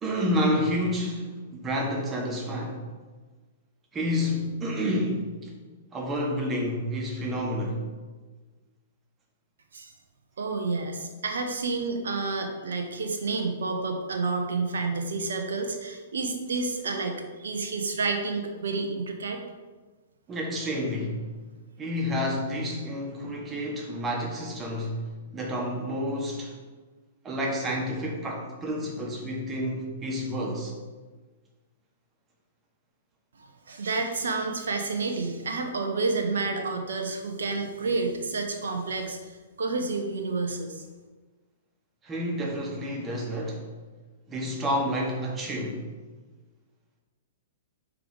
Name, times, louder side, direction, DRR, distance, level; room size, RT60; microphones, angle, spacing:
voice 1, 0.0-2.8 3.9-5.5 5.9-7.8 20.3-21.3 21.8-25.1 25.3-26.5 27.2-30.7 42.0-43.6 44.3-45.8, equal, 20° right, 1.6 m, -29 dB
voice 2, 10.4-19.4 33.4-40.8, right 3 dB, 70° right, 0.9 m, -30 dB
5.0 x 4.7 x 5.4 m
figure-of-eight pair, 115°, 0 cm